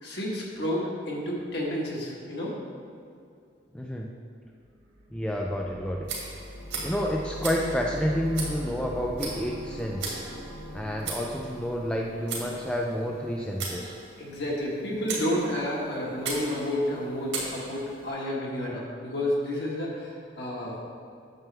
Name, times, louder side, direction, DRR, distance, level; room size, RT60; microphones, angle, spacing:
voice 1, 0.0-2.5 14.2-20.1 20.4-20.8, left 1 dB, 55° left, -4 dB, 1.7 m, -30 dB
voice 2, 3.7-4.1 5.1-6.1 6.8-10.2 10.7-13.9, equal, 5° left, -1 dB, 0.4 m, -29 dB
sound 1, 4.7-13.5, left 1 dB, 85° right, 1.5 m, -42 dB
Tick, 6.0-18.1, right 3 dB, 70° right, 2.1 m, -39 dB
9.1 x 7.0 x 3.5 m, 2.4 s
head